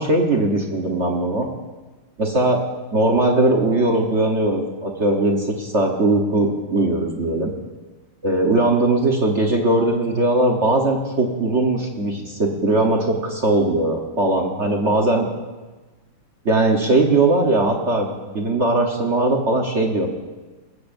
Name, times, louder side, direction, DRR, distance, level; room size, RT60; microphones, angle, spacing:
voice 1, 0.0-1.5 2.2-2.6 2.9-7.5 8.2-15.3 16.4-18.1 18.3-20.1, right 2 dB, 40° right, 1 dB, 1.1 m, -19 dB
19.5 x 15.5 x 2.6 m, 1.2 s
omnidirectional pair, 2.4 m